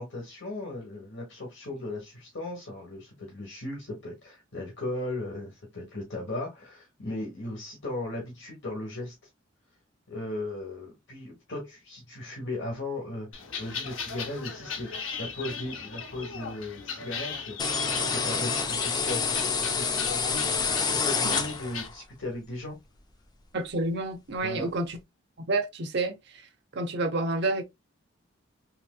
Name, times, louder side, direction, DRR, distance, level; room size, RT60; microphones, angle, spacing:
voice 1, 0.0-9.2 10.1-20.4 20.8-22.8 24.4-24.7, left 1 dB, 60° left, 1.1 m, -37 dB
sound 1, 13.3-21.9, left 5 dB, 75° left, 0.8 m, -38 dB
sound 2, 17.6-21.9, left 5 dB, 20° left, 0.4 m, -28 dB
voice 2, 23.5-25.0 25.4-26.4 26.7-27.6, right 2 dB, 55° right, 0.6 m, -29 dB
3.3 x 2.9 x 2.2 m
head